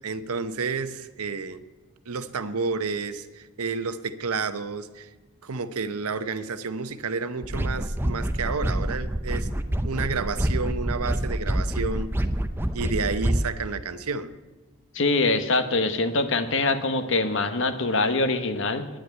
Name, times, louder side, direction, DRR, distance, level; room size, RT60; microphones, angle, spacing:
voice 1, 0.0-1.6 2.1-5.1 5.4-9.5 9.8-12.2 12.7-14.3, right 4 dB, 85° right, 12 dB, 0.8 m, -30 dB
sound 1, 7.4-13.5, right 1 dB, 10° right, 0.5 m, -27 dB
voice 2, 14.9-18.9, left 3 dB, 55° left, 10 dB, 1.1 m, -24 dB
10.5 x 9.8 x 9.3 m, 1.2 s
head